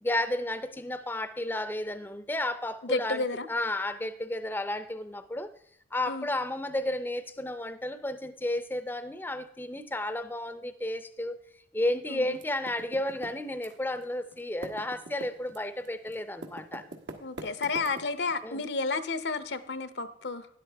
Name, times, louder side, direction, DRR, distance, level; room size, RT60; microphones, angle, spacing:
voice 1, 0.0-5.5 5.9-11.4 11.7-16.9 18.4-18.6, left 1 dB, 10° left, 0.5 m, -32 dB
voice 2, 2.8-3.5 6.1-6.3 12.1-12.4 17.2-20.5, left 3 dB, 70° left, 0.8 m, -31 dB
Typing, 12.3-14.0 14.3-18.3, right 2 dB, 90° right, 1.5 m, -43 dB
12.5 x 10.5 x 3.4 m
head